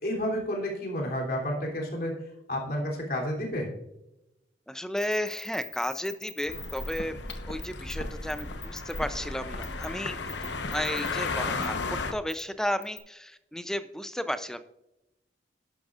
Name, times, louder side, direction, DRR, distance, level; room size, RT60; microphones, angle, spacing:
voice 1, 0.0-2.1 2.5-3.7, equal, 50° left, -1 dB, 3.2 m, -30 dB
voice 2, 4.7-7.2 7.5-10.2 10.4-11.7 12.1-14.6, equal, 5° left, 11 dB, 0.5 m, -33 dB
sound 1, 5.0-7.0 7.3-7.4 7.6-8.0 8.3-9.0 9.6-9.9 10.3-11.1 11.6-11.7 12.3-12.4 12.8-13.0, left 5 dB, 25° left, 1.4 m, -42 dB
sound 2, 6.5-12.1, left 3 dB, 75° left, 1.0 m, -34 dB
11.5 x 11.0 x 2.5 m, 0.89 s
head